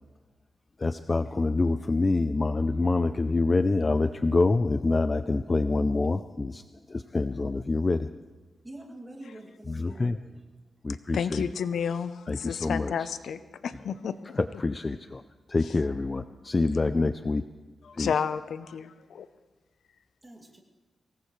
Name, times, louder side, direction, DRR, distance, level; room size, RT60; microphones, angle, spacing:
voice 1, 0.8-6.6 6.9-8.1 9.7-10.2 10.8-11.4 12.3-13.1 14.4-15.2 15.5-17.5 17.9-18.1, left 3 dB, 25° left, 0.4 m, -26 dB
voice 2, 8.6-10.3 20.2-20.6, right 1 dB, 15° right, 2.5 m, -46 dB
voice 3, 11.1-14.4 18.0-19.3, left 7 dB, 85° left, 0.7 m, -31 dB
24.0 x 18.5 x 3.2 m
wide cardioid pair, 150°, 0 cm